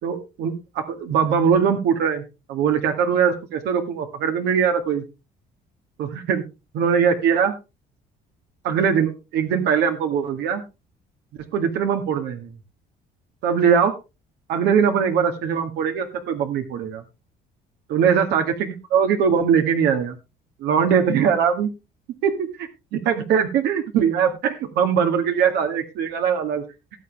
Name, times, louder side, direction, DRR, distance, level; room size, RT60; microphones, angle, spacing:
voice 1, 0.0-2.2 2.5-5.0 6.0-6.4 6.7-7.5 8.6-10.6 11.5-12.5 13.4-13.9 14.5-17.0 17.9-20.2 20.6-21.7 22.2-26.6, right 7 dB, 80° right, 5 dB, 2.0 m, -21 dB
18.5 x 7.4 x 3.4 m, 0.28 s
cardioid pair, 110°, 17 cm